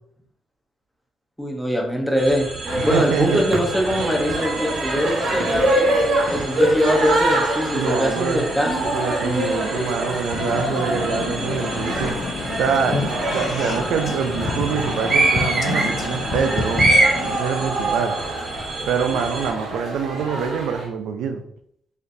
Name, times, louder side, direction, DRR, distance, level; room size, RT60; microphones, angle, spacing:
voice 1, 1.4-2.5 2.8-5.9 6.3-8.9, equal, ahead, 0 dB, 0.9 m, -22 dB
sound 1, 2.2-19.5, right 2 dB, 30° right, 0.9 m, -28 dB
sound 2, 2.7-20.9, right 1 dB, 60° right, 1.1 m, -26 dB
voice 2, 2.7-3.5 4.0-4.1 7.7-8.5 8.9-12.1 12.6-16.9 17.3-18.2 18.9-21.4, right 6 dB, 80° right, 5 dB, 0.4 m, -25 dB
sound 3, 10.3-17.4, left 4 dB, 55° left, 0.5 m, -29 dB
4.2 x 3.0 x 2.6 m, 0.68 s
cardioid pair, 90°, 0 cm